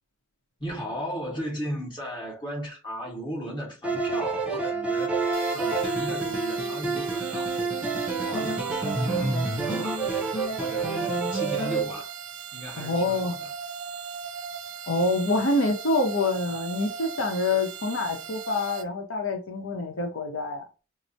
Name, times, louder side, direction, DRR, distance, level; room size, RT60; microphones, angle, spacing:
voice 1, 0.6-5.2 5.5-9.3 9.6-12.1 12.5-13.5, equal, 25° left, 1.5 m, -36 dB
sound 1, 3.8-11.9, right 3 dB, 5° right, 0.7 m, -28 dB
sound 2, 5.3-18.8, right 6 dB, 65° right, 0.5 m, -38 dB
voice 2, 12.8-13.4 14.9-20.6, left 2 dB, 80° left, 0.7 m, -26 dB
4.4 x 2.0 x 2.6 m
head